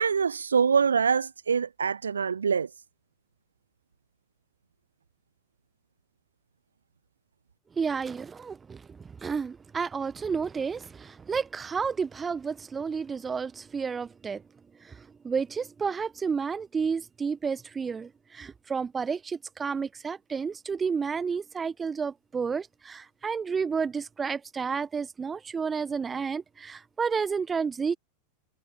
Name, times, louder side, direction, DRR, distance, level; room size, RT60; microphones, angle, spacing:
voice 1, 0.0-2.7, right 6 dB, 75° right, 0.4 m, -24 dB
voice 2, 7.8-14.4 14.8-27.9, right 5 dB, 15° right, 1.6 m, -31 dB
figure-of-eight pair, 90°, 0 cm